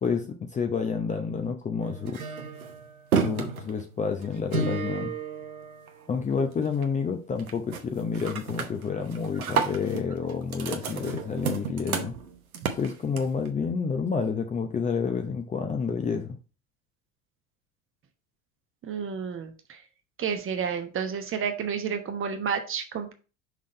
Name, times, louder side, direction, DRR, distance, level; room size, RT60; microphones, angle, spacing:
voice 1, 0.0-2.2 3.1-5.2 6.1-12.2 12.8-16.4, left 5 dB, 15° left, 5 dB, 0.7 m, -29 dB
sound 1, 1.8-6.3 6.7-7.1 7.4-7.8 8.1-13.5, right 6 dB, 80° right, 1.0 m, -32 dB
voice 2, 18.8-19.8 20.2-23.1, right 7 dB, 30° right, 7 dB, 1.1 m, -31 dB
5.9 x 3.7 x 4.3 m, 0.34 s
figure-of-eight pair, 75°, 42 cm